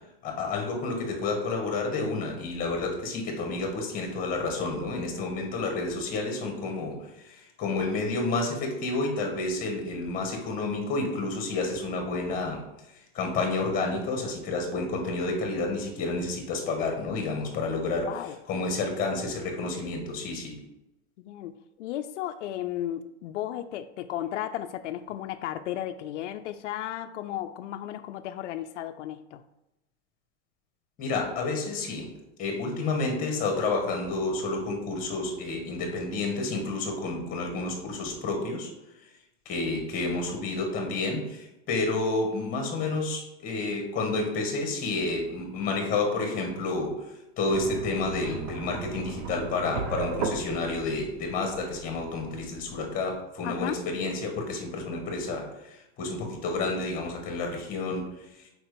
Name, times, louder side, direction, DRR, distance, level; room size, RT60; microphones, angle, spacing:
voice 1, 0.2-12.6 13.1-18.1 18.5-20.6 31.0-32.1 32.4-38.7 39.4-46.9 47.4-58.0 58.3-58.4, left 3 dB, 25° left, 3 dB, 1.5 m, -30 dB
voice 2, 18.0-18.4 21.2-29.4 53.4-53.8, left 12 dB, 85° left, 9 dB, 0.5 m, -34 dB
sound 1, 47.4-53.1, right 4 dB, 40° right, 0.8 m, -36 dB
4.8 x 4.4 x 5.0 m, 0.91 s
supercardioid pair, 155°, 35 cm